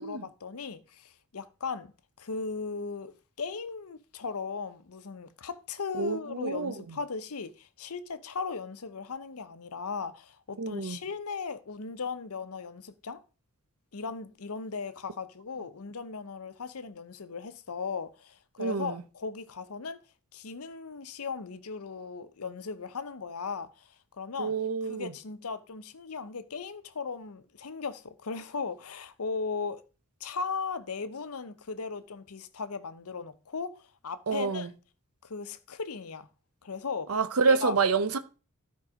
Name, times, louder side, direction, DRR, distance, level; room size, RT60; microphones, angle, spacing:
voice 1, 0.0-1.9 2.2-13.2 13.9-20.0 20.3-24.5 24.9-29.8 30.2-34.7 35.2-36.3 36.6-37.2 37.5-37.8, left 5 dB, 80° left, 0.8 m, -37 dB
voice 2, 6.0-6.7 10.6-11.0 18.6-19.0 24.4-25.1 34.3-34.7 37.1-38.2, right 4 dB, 80° right, 0.7 m, -28 dB
12.5 x 4.7 x 4.9 m
head